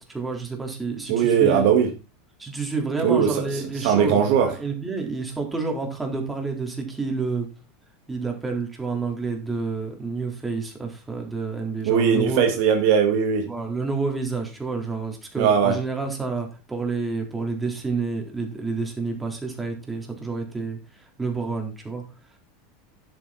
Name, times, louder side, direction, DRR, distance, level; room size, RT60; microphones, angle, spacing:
voice 1, 0.0-1.7 2.4-7.5 8.1-12.4 13.5-22.0, right 4 dB, 10° right, 2 dB, 3.9 m, -29 dB
voice 2, 1.1-1.9 3.0-3.3 3.8-4.5 11.9-13.5 15.4-15.7, right 7 dB, 60° right, 4 dB, 2.0 m, -19 dB
10.5 x 8.0 x 4.3 m, 0.32 s
hypercardioid pair, 90°, 0 cm